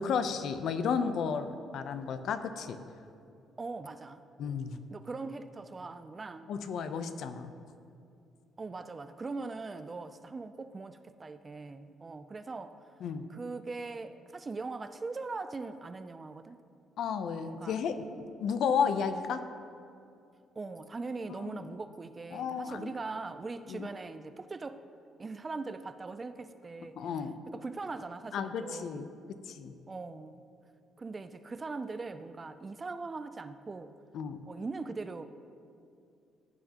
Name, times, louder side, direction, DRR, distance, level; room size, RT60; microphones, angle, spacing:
voice 1, 0.0-1.5 1.7-2.8 4.4-4.8 6.5-7.5 13.0-13.3 17.0-19.4 21.4-21.7 22.3-22.9 23.7-23.9 27.0-27.4 28.3-29.1 29.5-29.7 34.1-34.4, left 6 dB, 60° left, 9 dB, 0.6 m, -33 dB
voice 2, 3.6-4.2 4.9-6.5 8.6-12.8 13.3-16.6 17.5-17.8 20.6-24.8 25.2-27.1 27.5-29.1 29.9-30.4 31.0-33.9 34.5-35.2, right 3 dB, 20° right, 11 dB, 0.4 m, -41 dB
16.0 x 8.9 x 2.9 m, 2.5 s
cardioid pair, 150°, 0 cm